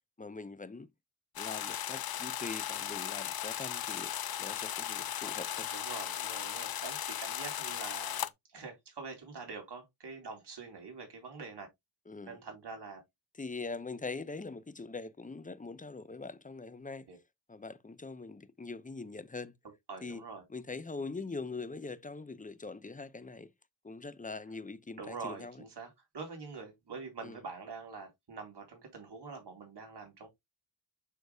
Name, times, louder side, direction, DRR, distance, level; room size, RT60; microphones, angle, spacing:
voice 1, 0.2-0.9 1.4-4.1 4.4-5.7 12.1-12.4 13.4-17.1 17.5-19.5 20.0-20.2 20.5-23.5 23.8-25.6 27.2-27.4, left 3 dB, 20° left, 0.7 m, -42 dB
sound 1, 1.4-8.3, left 10 dB, 55° left, 0.6 m, -37 dB
voice 2, 5.7-11.7 12.3-13.0 17.1-17.2 19.9-20.4 25.0-30.3, right 4 dB, 60° right, 3.8 m, -45 dB
6.6 x 6.5 x 2.2 m
cardioid pair, 75°, 45 cm